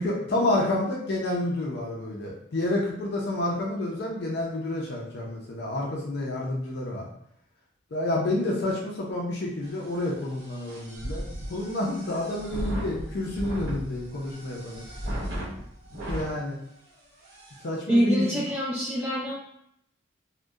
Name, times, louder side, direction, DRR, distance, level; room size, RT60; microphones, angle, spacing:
voice 1, 0.0-7.1 7.9-11.2 11.5-14.8 16.1-16.6 17.6-18.2, left 1 dB, 50° left, -2 dB, 0.4 m, -29 dB
sound 1, 9.6-16.3 16.9-17.0 17.2-17.6, equal, 50° right, 0.9 m, -36 dB
voice 2, 17.9-19.3, equal, 10° right, -10 dB, 1.1 m, -25 dB
2.6 x 2.1 x 2.3 m, 0.73 s
head